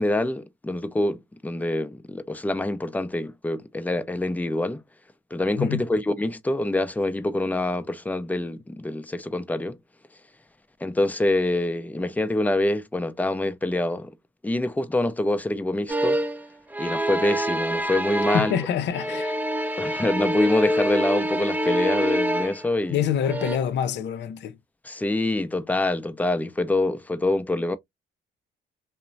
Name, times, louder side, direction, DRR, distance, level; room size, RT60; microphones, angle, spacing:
voice 1, 0.0-4.8 5.3-9.8 10.8-14.1 14.4-16.2 16.8-18.5 19.8-23.0 24.8-27.8, left 2 dB, 10° left, 0.4 m, -25 dB
sound 1, 15.9-16.5 16.7-18.7 18.9-22.7 23.2-23.6, equal, 10° right, 0.8 m, -26 dB
voice 2, 18.3-19.4 22.9-24.5, left 9 dB, 65° left, 0.5 m, -26 dB
2.9 x 2.0 x 2.5 m
cardioid pair, 90°, 20 cm